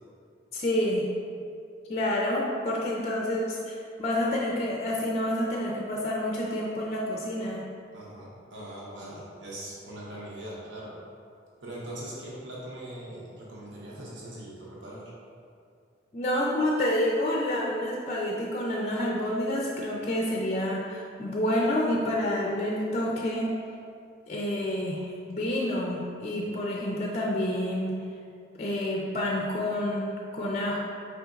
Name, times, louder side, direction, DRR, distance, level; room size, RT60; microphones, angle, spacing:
voice 1, 0.5-1.1 1.9-7.6 16.1-23.6 24.3-28.0 28.6-30.8, left 1 dB, 35° left, -3 dB, 0.4 m, -28 dB
voice 2, 7.9-11.0 11.6-15.1, right 1 dB, 80° right, -6 dB, 0.8 m, -41 dB
4.9 x 3.9 x 2.4 m, 2.4 s
head